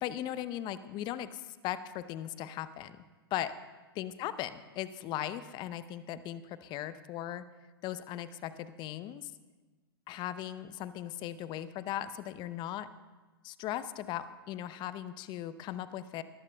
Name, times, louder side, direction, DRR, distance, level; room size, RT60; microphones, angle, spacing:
voice 1, 0.0-3.0 3.3-3.5 4.0-7.4 7.8-9.3 10.1-12.9 13.4-16.2, left 12 dB, 35° left, 13 dB, 0.7 m, -38 dB
21.0 x 14.5 x 2.3 m, 1.3 s
hypercardioid pair, 105°, 13 cm